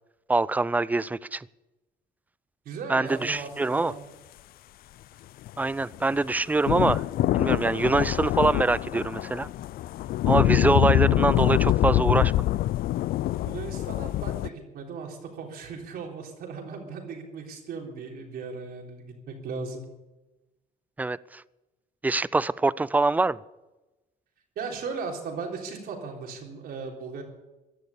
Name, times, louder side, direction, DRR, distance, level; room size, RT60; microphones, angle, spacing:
voice 1, 0.3-1.4 2.9-3.9 5.6-7.0 7.3-9.5 10.3-12.3 21.0-21.4 22.0-23.4, right 3 dB, 10° right, 20 dB, 0.4 m, -24 dB
voice 2, 2.7-4.0 13.5-19.8 24.6-27.2, right 5 dB, 65° right, 1 dB, 3.7 m, -37 dB
sound 1, 5.5-14.5, left 14 dB, 60° left, 0.4 m, -25 dB
16.0 x 10.5 x 7.1 m, 1.1 s
cardioid pair, 110°, 17 cm